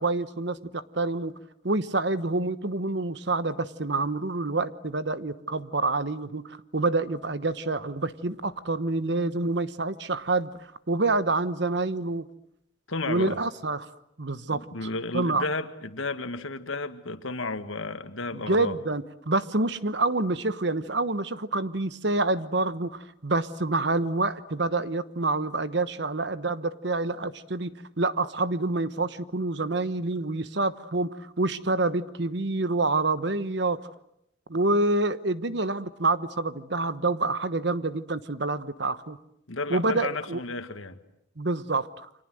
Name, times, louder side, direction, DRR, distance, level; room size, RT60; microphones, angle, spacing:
voice 1, 0.0-1.3 1.6-12.3 13.1-13.9 14.2-14.9 15.1-15.5 18.3-33.8 34.5-39.2 39.7-40.4 41.4-42.1, right 2 dB, 60° right, 14 dB, 1.2 m, -27 dB
voice 2, 12.9-13.4 14.5-18.8 39.5-41.0, left 3 dB, 85° left, 10 dB, 1.9 m, -33 dB
29.5 x 25.0 x 7.8 m, 0.77 s
head